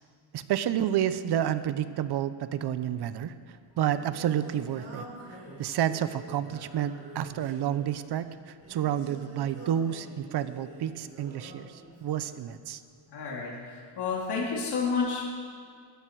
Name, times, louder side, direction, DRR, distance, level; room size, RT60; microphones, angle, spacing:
voice 1, 0.3-3.3 3.8-12.8, right 10 dB, 55° right, 13 dB, 0.8 m, -30 dB
Singing, 3.4-12.5, right 2 dB, 30° right, 4.9 m, -47 dB
voice 2, 13.1-13.5 14.0-15.2, left 5 dB, 55° left, -3 dB, 3.2 m, -29 dB
20.0 x 14.0 x 4.7 m, 2.1 s
cardioid pair, 145°, 49 cm